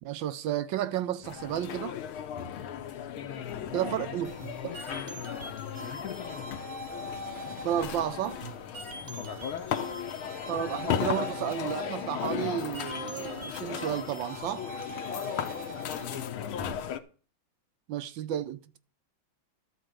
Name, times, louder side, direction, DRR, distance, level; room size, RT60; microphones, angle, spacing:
voice 1, 0.0-2.0 3.7-4.3 7.6-8.4 10.5-14.7 17.9-18.8, right 11 dB, 75° right, 1.3 m, -32 dB
sound 1, 1.2-17.0, left 9 dB, 85° left, 1.7 m, -36 dB
voice 2, 3.1-6.7 9.0-9.5 15.9-16.7, left 9 dB, 60° left, 1.1 m, -43 dB
sound 2, 4.2-16.2, equal, 40° right, 1.6 m, -43 dB
12.5 x 4.4 x 7.5 m
omnidirectional pair, 2.2 m